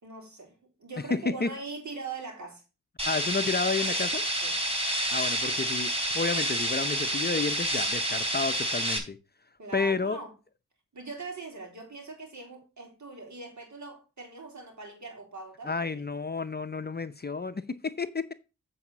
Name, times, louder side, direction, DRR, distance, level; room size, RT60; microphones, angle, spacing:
voice 1, 0.0-2.6 4.4-4.6 9.6-10.3 10.9-16.0, right 3 dB, 60° right, 3.8 m, -41 dB
voice 2, 1.1-1.5 3.0-4.2 5.1-9.2 9.7-10.2 15.6-18.3, left 4 dB, 30° left, 0.7 m, -31 dB
sound 1, 3.0-9.0, right 1 dB, 20° right, 3.4 m, -29 dB
8.4 x 5.0 x 5.5 m
cardioid pair, 45°, 32 cm